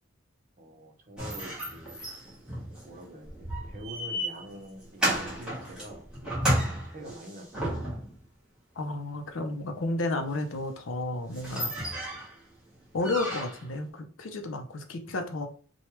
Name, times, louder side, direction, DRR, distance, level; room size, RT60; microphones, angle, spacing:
voice 1, 0.6-2.1 2.8-7.9, right 1 dB, 40° right, 2 dB, 0.6 m, -46 dB
sound 1, 1.2-8.2 10.6-10.7 11.0-11.1 11.3-12.4 13.0-13.7, equal, 5° right, 1.1 m, -32 dB
voice 2, 8.8-11.7 12.9-15.5, left 2 dB, 65° left, 6 dB, 0.5 m, -32 dB
3.1 x 2.2 x 3.0 m, 0.39 s
head